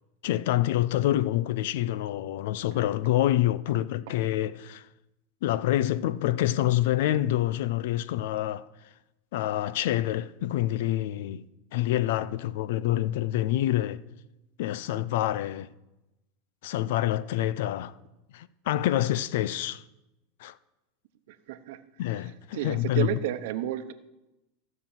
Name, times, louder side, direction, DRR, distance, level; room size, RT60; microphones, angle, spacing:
voice 1, 0.2-4.8 5.4-8.7 9.3-11.4 11.7-14.0 14.6-15.7 16.6-17.9 18.3-19.8 20.4-20.5 22.0-23.2, left 13 dB, 70° left, 0.5 m, -27 dB
voice 2, 21.3-21.8 22.5-23.9, right 13 dB, 70° right, 0.9 m, -31 dB
15.5 x 6.0 x 7.2 m
supercardioid pair, 115°, 0 cm